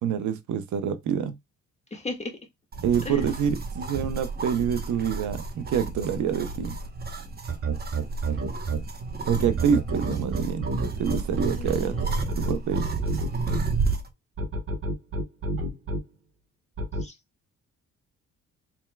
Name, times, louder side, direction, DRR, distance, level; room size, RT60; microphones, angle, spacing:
voice 1, 0.0-1.4 2.8-6.8 9.3-11.9 12.4-12.9, right 8 dB, 75° right, 0.8 m, -27 dB
voice 2, 1.9-2.3 3.0-3.2 11.5-12.2 17.0-17.1, left 3 dB, 20° left, 1.7 m, -36 dB
sound 1, 2.7-14.1, right 3 dB, 30° right, 1.0 m, -31 dB
sound 2, 7.5-8.8 9.6-13.6 14.4-16.0 16.8-17.0, right 2 dB, 45° right, 1.6 m, -29 dB
4.3 x 3.5 x 2.3 m
cardioid pair, 90°, 30 cm